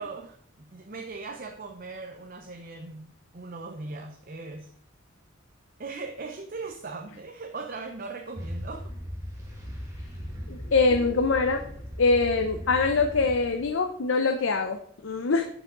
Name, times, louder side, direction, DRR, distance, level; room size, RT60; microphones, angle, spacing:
voice 1, 0.0-4.7 5.8-8.9, right 3 dB, 45° right, 4 dB, 0.7 m, -39 dB
sound 1, 8.4-13.7, equal, 15° right, 1.7 m, -38 dB
voice 2, 10.5-11.6 12.0-15.5, left 4 dB, 80° left, 5 dB, 0.7 m, -24 dB
11.0 x 5.0 x 3.8 m, 0.63 s
head